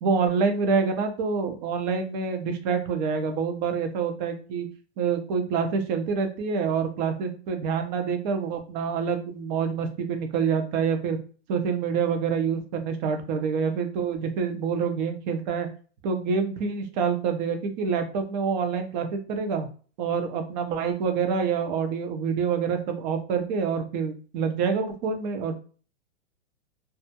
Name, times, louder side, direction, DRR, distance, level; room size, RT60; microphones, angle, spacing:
voice 1, 0.0-4.7 5.0-11.2 11.5-15.7 16.0-19.7 20.0-25.6, right 6 dB, 40° right, 6 dB, 0.5 m, -27 dB
2.3 x 2.0 x 2.7 m, 0.38 s
hypercardioid pair, 130°, 34 cm